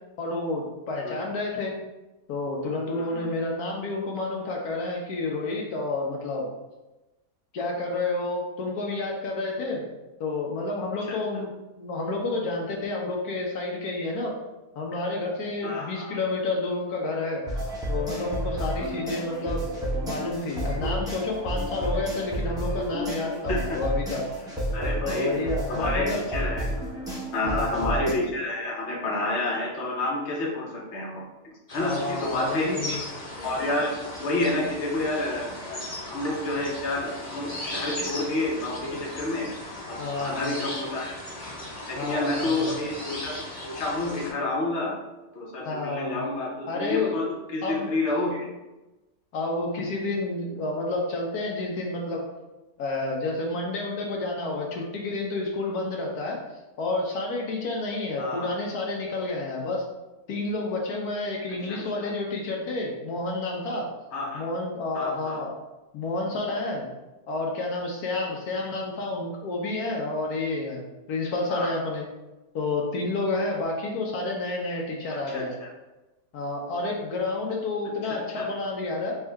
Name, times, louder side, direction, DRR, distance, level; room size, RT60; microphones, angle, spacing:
voice 1, 0.2-1.7 2.3-6.5 7.5-9.8 10.2-11.5 11.8-14.3 14.8-17.4 17.9-19.7 20.0-24.2 25.0-26.2 27.4-28.0 31.8-33.0 40.0-40.6 41.9-42.7 45.6-46.2 46.7-47.2 47.6-47.9 49.3-52.2 52.8-56.4 56.8-59.8 60.3-63.9 64.3-65.5 65.9-66.9 67.3-70.8 71.1-72.0 72.5-75.6 76.3-79.1, left 2 dB, 80° left, -1 dB, 1.2 m, -30 dB
voice 2, 2.9-3.2 11.1-11.2 15.6-16.1 23.5-23.8 24.7-25.4 25.7-26.7 27.3-31.2 31.7-33.0 33.4-33.9 34.2-39.5 39.9-41.1 41.9-43.4 43.6-44.9 45.3-48.5 58.2-58.5 61.7-62.1 64.1-64.5 64.9-65.4 71.5-71.7 75.3-75.5 78.1-78.5, left 2 dB, 55° left, -3 dB, 1.1 m, -29 dB
sound 1, 17.5-28.1, equal, 5° right, 0.7 m, -31 dB
sound 2, 31.7-44.3, left 1 dB, 30° left, 0.8 m, -37 dB
4.5 x 2.7 x 3.4 m, 1.0 s
omnidirectional pair, 1.6 m